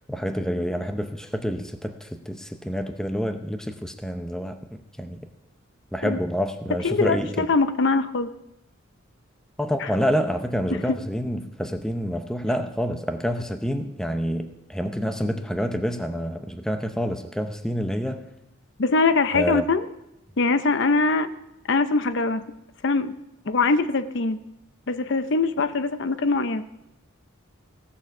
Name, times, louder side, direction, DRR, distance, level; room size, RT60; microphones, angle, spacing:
voice 1, 0.1-5.2 5.9-7.5 9.6-18.3 19.3-19.7, equal, 5° left, 7 dB, 0.6 m, -28 dB
voice 2, 6.8-8.3 9.8-9.9 10.7-11.0 18.8-19.9 20.4-21.3 21.7-22.4 22.8-23.1 23.5-24.4 24.9-26.7, left 3 dB, 55° left, 12 dB, 0.6 m, -22 dB
17.0 x 7.0 x 5.9 m, 0.89 s
head